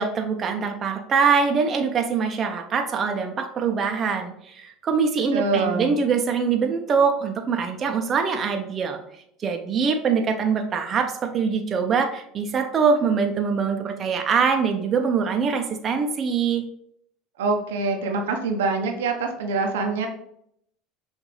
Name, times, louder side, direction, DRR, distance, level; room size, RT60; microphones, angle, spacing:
voice 1, 0.0-9.0 9.4-16.6, right 5 dB, 40° right, 4 dB, 0.7 m, -23 dB
voice 2, 5.3-6.0 17.4-20.1, right 3 dB, 85° right, 3 dB, 0.8 m, -25 dB
6.0 x 2.6 x 3.2 m, 0.71 s
hypercardioid pair, 90°, 0 cm